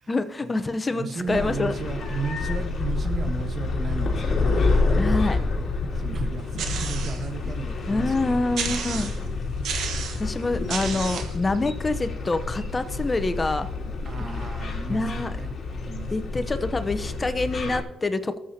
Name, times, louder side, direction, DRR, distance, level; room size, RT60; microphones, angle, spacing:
voice 1, 0.1-1.7 5.0-5.4 7.9-9.1 10.1-13.7 14.9-15.4 16.1-18.4, left 3 dB, 25° left, 10 dB, 0.8 m, -26 dB
voice 2, 0.9-5.3 5.9-9.1 14.0-15.5 15.9-16.4, right 4 dB, 45° right, 6 dB, 1.3 m, -34 dB
sound 1, 1.3-17.8, left 3 dB, 45° left, 2.7 m, -28 dB
sound 2, 6.6-7.3 7.8-7.9 8.5-9.3 9.6-10.3 10.7-11.4, right 6 dB, 75° right, 1.3 m, -31 dB
19.0 x 7.4 x 2.9 m, 1.0 s
cardioid pair, 90°, 0 cm